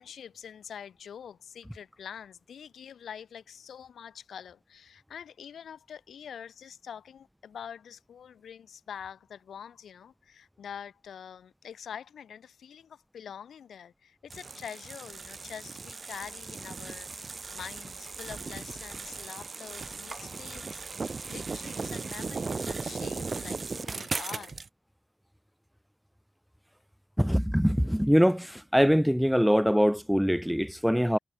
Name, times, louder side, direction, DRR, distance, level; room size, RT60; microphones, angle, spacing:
voice 1, 0.0-24.6, left 8 dB, 80° left, 6.6 m, -45 dB
sound 1, 14.3-24.7, right 4 dB, 40° right, 1.5 m, -37 dB
voice 2, 27.2-28.5 28.7-31.2, equal, ahead, 0.3 m, -23 dB
cardioid pair, 85°, 0 cm